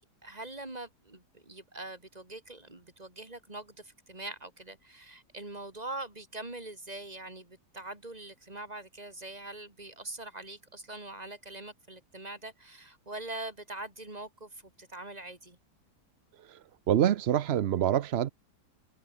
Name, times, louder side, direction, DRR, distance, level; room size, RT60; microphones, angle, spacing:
voice 1, 0.0-15.6, right 2 dB, 25° right, 3.4 m, -43 dB
voice 2, 16.9-18.3, right 10 dB, 65° right, 0.6 m, -26 dB
omnidirectional pair, 1.8 m